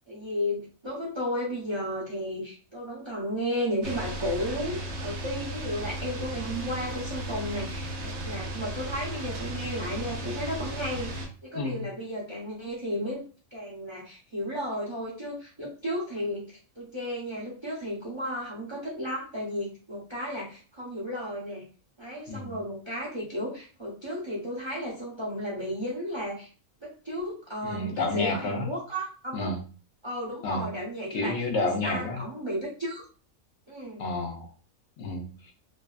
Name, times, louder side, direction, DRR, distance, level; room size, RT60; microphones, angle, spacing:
voice 1, 0.1-13.2 13.5-21.6 22.0-26.5 26.8-29.6 30.0-31.5 31.8-33.0 33.7-34.1, equal, 35° right, -5 dB, 0.5 m, -34 dB
sound 1, 3.8-11.3, right 1 dB, 85° right, 1.0 m, -35 dB
voice 2, 11.5-11.9 22.3-22.6 27.6-28.7 29.3-29.6 30.4-30.7 31.1-32.2 34.0-34.5 35.0-35.5, left 2 dB, 65° left, 2 dB, 0.8 m, -30 dB
2.6 x 2.2 x 2.3 m, 0.37 s
omnidirectional pair, 1.4 m